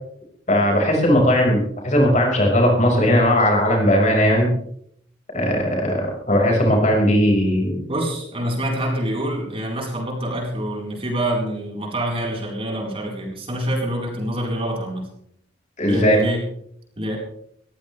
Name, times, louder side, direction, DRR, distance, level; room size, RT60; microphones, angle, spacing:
voice 1, 0.5-4.5 5.3-7.8 15.8-16.2, equal, 40° left, 1 dB, 5.4 m, -18 dB
voice 2, 7.9-15.1 15.9-16.4 17.0-17.2, equal, 30° right, -1 dB, 4.4 m, -26 dB
21.0 x 15.0 x 3.4 m, 0.67 s
head